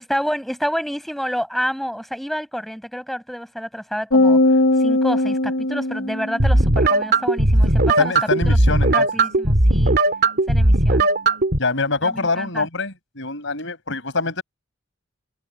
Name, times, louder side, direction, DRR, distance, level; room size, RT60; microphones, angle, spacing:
voice 1, 0.0-8.6 8.9-10.0 10.5-11.1 12.0-12.7, equal, ahead, 6.1 m, -29 dB
sound 1, 4.1-6.6, left 2 dB, 50° left, 1.0 m, -19 dB
sound 2, 6.4-11.6, right 2 dB, 55° right, 2.5 m, -17 dB
voice 2, 8.0-9.1 11.6-14.4, left 3 dB, 70° left, 6.3 m, -24 dB
open air
head